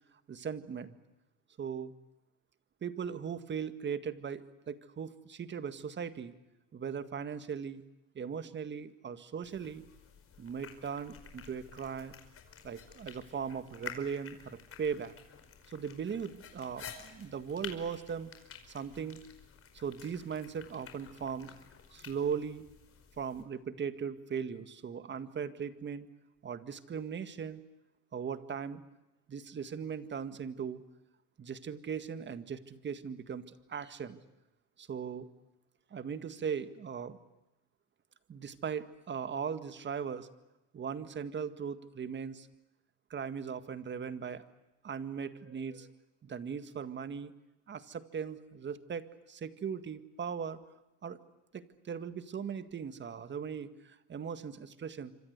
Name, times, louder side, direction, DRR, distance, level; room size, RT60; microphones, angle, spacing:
voice 1, 0.3-1.0 1.6-1.9 2.8-6.3 6.7-7.8 8.2-9.9 10.4-12.1 12.6-15.1 15.7-18.3 18.7-19.3 19.7-21.5 21.9-22.7 23.2-26.1 26.4-27.6 28.1-28.8 29.3-30.8 31.4-34.2 34.8-35.3 35.9-37.2 38.3-40.3 40.7-42.5 43.1-44.4 44.8-45.9 46.2-47.3 47.7-50.6 51.0-51.2 51.5-55.1, right 7 dB, 30° right, 11 dB, 1.9 m, -39 dB
sound 1, 9.4-23.4, left 7 dB, 40° left, 5.2 m, -51 dB
26.5 x 25.5 x 8.2 m, 0.99 s
supercardioid pair, 105°, 34 cm